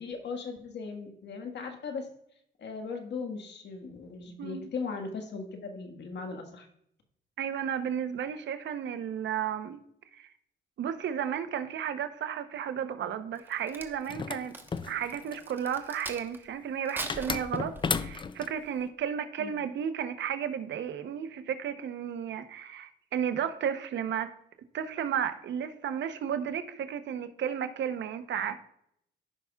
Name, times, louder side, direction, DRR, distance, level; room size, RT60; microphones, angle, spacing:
voice 1, 0.0-2.1 2.6-6.7 19.4-19.5, left 4 dB, 60° left, 1.6 m, -38 dB
voice 2, 4.4-4.7 7.4-9.8 10.1-10.3 10.8-14.5 14.8-24.3 24.7-28.6, right 8 dB, 65° right, 0.8 m, -33 dB
Crack, 13.3-16.4 16.8-18.1 18.6-18.8, right 1 dB, 10° right, 1.0 m, -42 dB
sound 1, 14.1-15.5 17.1-18.5, left 5 dB, 25° left, 0.4 m, -33 dB
15.0 x 5.7 x 2.3 m
cardioid pair, 90°, 20 cm